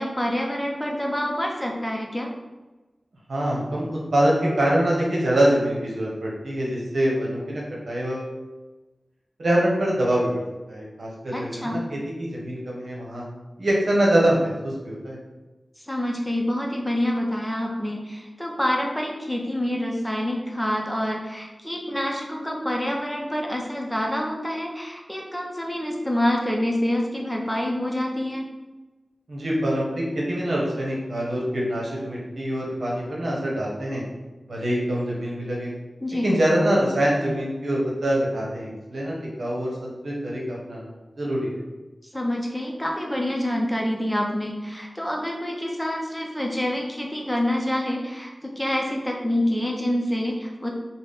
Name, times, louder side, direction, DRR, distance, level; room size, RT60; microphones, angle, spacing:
voice 1, 0.0-2.3 11.3-11.8 15.8-28.5 36.0-36.3 42.1-50.7, left 1 dB, 10° left, 0 dB, 0.6 m, -27 dB
voice 2, 3.3-8.3 9.4-10.4 10.7-13.2 13.6-15.2 29.3-34.0 34.5-35.7 36.2-41.6, right 1 dB, 85° right, -4 dB, 0.9 m, -24 dB
4.0 x 2.2 x 3.5 m, 1.2 s
wide cardioid pair, 75°, 0 cm